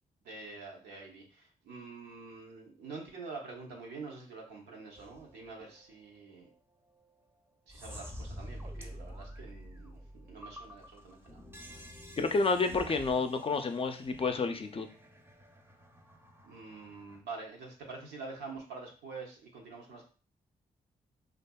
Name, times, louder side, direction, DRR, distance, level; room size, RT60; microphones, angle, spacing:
voice 1, 0.2-6.5 7.7-11.8 16.4-20.0, right 4 dB, 85° right, 0 dB, 0.7 m, -46 dB
sound 1, 5.0-5.9 6.4-6.5 7.0-7.1 7.7-17.2, equal, 15° right, 0.6 m, -48 dB
voice 2, 12.2-14.9, left 4 dB, 35° left, 8 dB, 0.4 m, -30 dB
2.6 x 2.3 x 2.2 m, 0.37 s
supercardioid pair, 50°, 17 cm